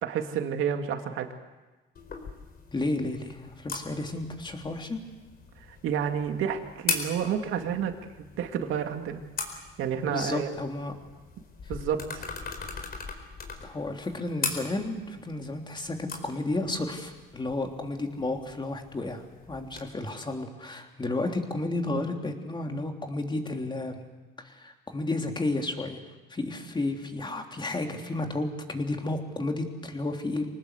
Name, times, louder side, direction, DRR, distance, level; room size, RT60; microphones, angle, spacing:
voice 1, 0.0-1.3 5.8-9.2 9.8-10.5 11.7-12.3, right 8 dB, 80° right, 5 dB, 2.4 m, -30 dB
sound 1, 1.9-19.8, left 4 dB, 50° left, 4.5 m, -40 dB
voice 2, 2.7-5.0 10.1-10.9 13.6-24.0 24.4-26.0 26.3-30.5, left 2 dB, 20° left, 3 dB, 3.3 m, -32 dB
26.0 x 19.0 x 8.2 m, 1.2 s
cardioid pair, 105°, 21 cm